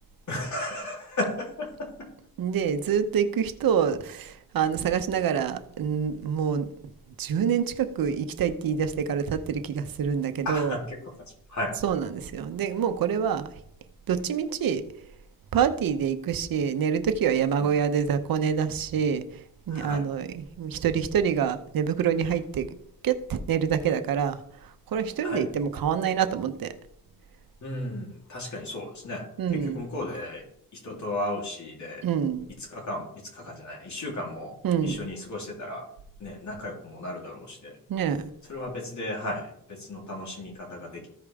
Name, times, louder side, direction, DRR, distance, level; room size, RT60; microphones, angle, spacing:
voice 1, 0.3-2.1 10.4-11.0 11.5-11.8 17.6-17.7 19.7-20.1 25.2-25.4 27.6-30.4 30.7-32.1 32.7-34.5 34.8-35.8 36.2-37.8 38.5-41.1, left 1 dB, 55° left, 3.4 m, -34 dB
voice 2, 2.4-6.7 7.2-10.7 11.8-13.5 14.1-14.9 15.5-19.3 19.7-22.8 23.0-24.4 24.9-26.7 29.4-29.8 32.0-32.5 34.6-35.0 37.9-38.3, right 7 dB, 75° right, 0.9 m, -26 dB
14.5 x 5.0 x 3.6 m
cardioid pair, 80°, 35 cm